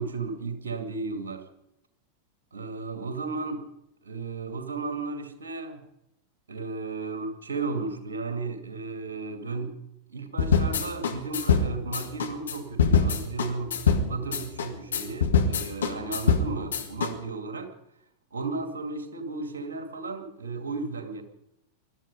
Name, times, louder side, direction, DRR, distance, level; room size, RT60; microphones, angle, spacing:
voice 1, 0.0-1.5 2.5-3.7 4.0-5.8 6.5-9.8 10.1-17.7 18.3-21.2, right 3 dB, 70° right, 2.4 m, -34 dB
sound 1, 10.4-17.1, left 5 dB, 65° left, 1.9 m, -24 dB
21.0 x 13.0 x 5.3 m
figure-of-eight pair, 90°, 0 cm